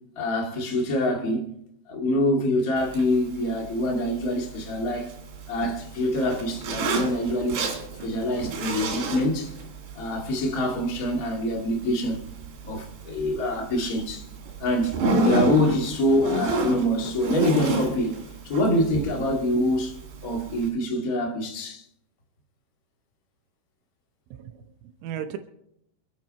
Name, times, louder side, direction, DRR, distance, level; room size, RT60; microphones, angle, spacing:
voice 1, 0.1-1.5 1.8-5.2 5.5-9.5 9.9-12.2 12.6-14.3 14.6-20.0 20.2-21.8, left 1 dB, 40° left, 1.2 m, -25 dB
Zipper (clothing), 2.8-20.7, right 3 dB, 65° right, 4.6 m, -31 dB
voice 2, 24.3-25.4, right 10 dB, 90° right, 3.4 m, -36 dB
27.5 x 9.3 x 4.2 m
omnidirectional pair, 5.4 m